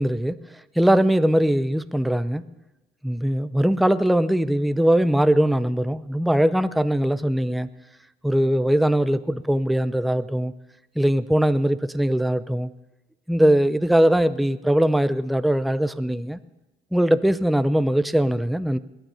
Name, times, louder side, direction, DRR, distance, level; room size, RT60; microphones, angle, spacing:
voice 1, 0.0-2.5 3.0-7.7 8.2-10.5 11.0-12.7 13.3-16.4 16.9-18.8, right 1 dB, ahead, 13 dB, 0.5 m, -21 dB
20.5 x 9.3 x 5.7 m, 1.0 s
cardioid pair, 90°, 20 cm